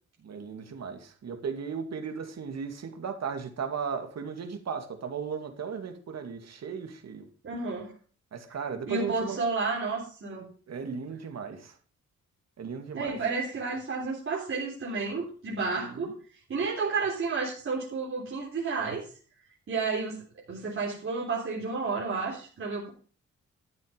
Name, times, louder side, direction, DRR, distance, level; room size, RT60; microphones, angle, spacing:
voice 1, 0.2-7.3 8.3-9.4 10.7-11.7 12.6-13.2 15.9-16.1, right 6 dB, 60° right, 6 dB, 2.4 m, -36 dB
voice 2, 7.4-7.9 8.9-10.5 12.9-16.1 16.5-19.1 19.7-22.9, right 4 dB, 45° right, -5 dB, 3.7 m, -31 dB
13.0 x 7.6 x 5.2 m, 0.40 s
cardioid pair, 115°, 29 cm